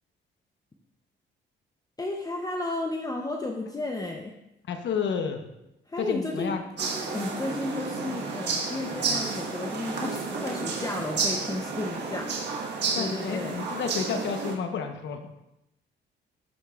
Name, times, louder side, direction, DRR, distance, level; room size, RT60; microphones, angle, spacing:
voice 1, 2.0-4.3 5.9-6.5 7.1-13.6, left 2 dB, 20° left, 1 dB, 0.8 m, -33 dB
voice 2, 4.7-5.4 6.0-6.6 12.9-15.4, left 6 dB, 65° left, 5 dB, 1.0 m, -30 dB
sound 1, 6.8-14.6, right 4 dB, 60° right, 1.5 m, -31 dB
13.0 x 5.2 x 2.5 m, 0.88 s
cardioid pair, 90°, 20 cm